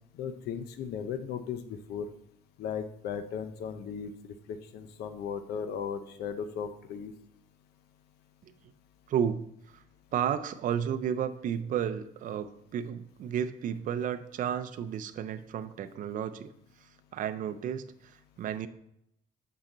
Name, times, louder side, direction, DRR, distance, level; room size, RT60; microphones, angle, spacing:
voice 1, 0.1-2.1 2.6-4.1 4.5-7.1, left 7 dB, 75° left, 9 dB, 0.6 m, -36 dB
voice 2, 9.1-9.5 9.7-9.8 10.1-16.5 16.8-18.7, right 8 dB, 50° right, 10 dB, 0.5 m, -32 dB
7.2 x 5.6 x 3.8 m, 0.76 s
cardioid pair, 110°, 17 cm